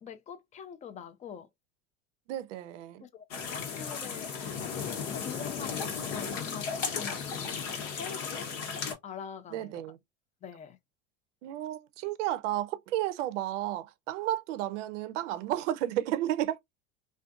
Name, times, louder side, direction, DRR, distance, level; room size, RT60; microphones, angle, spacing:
voice 1, 0.0-1.5 3.0-8.5 9.0-9.8 10.4-10.8, left 7 dB, 20° left, 0.4 m, -45 dB
voice 2, 2.3-3.0 9.5-10.0 11.4-16.6, right 13 dB, 70° right, 0.5 m, -32 dB
sound 1, 3.3-8.9, left 6 dB, 70° left, 1.0 m, -35 dB
2.5 x 2.3 x 2.3 m
hypercardioid pair, 90°, 37 cm